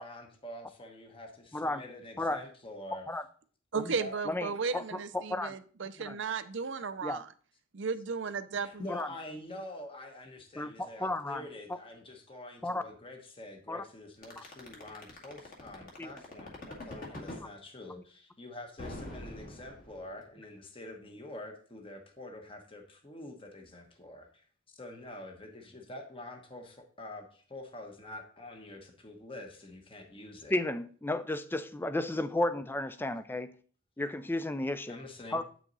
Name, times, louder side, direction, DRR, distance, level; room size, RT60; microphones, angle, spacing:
voice 1, 0.0-3.0 3.8-4.2 8.6-24.4 24.7-30.6 34.9-35.4, left 1 dB, 25° left, 1.1 m, -46 dB
voice 2, 2.9-3.2 3.7-4.0 4.2-5.5 6.0-6.2 7.0-7.2 8.9-9.1 10.6-11.8 12.6-12.8 13.7-13.8 14.4-14.5 16.0-16.2 30.5-33.5 34.0-35.0 35.3-35.4, left 2 dB, 10° left, 0.4 m, -33 dB
voice 3, 3.7-7.2 7.7-8.8, right 5 dB, 60° right, 0.6 m, -35 dB
sound 1, 14.2-17.5 18.8-20.2, left 1 dB, 40° left, 2.0 m, -43 dB
8.6 x 6.2 x 4.0 m
head